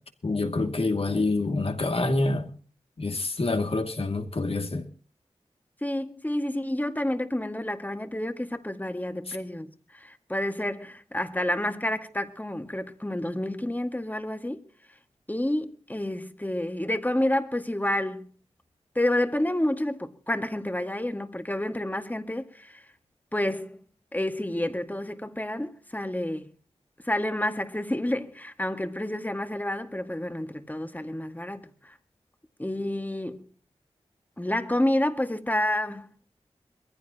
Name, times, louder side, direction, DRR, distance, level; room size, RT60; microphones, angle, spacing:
voice 1, 0.2-2.5 3.0-4.9 9.3-9.4, left 2 dB, 60° left, 2.5 m, -27 dB
voice 2, 5.8-14.6 15.3-18.3 19.0-22.8 23.3-23.8 24.1-26.5 27.0-31.9 32.6-33.5 34.4-36.1, left 1 dB, 15° left, 2.0 m, -29 dB
22.5 x 15.5 x 3.0 m
cardioid pair, 45°, 11 cm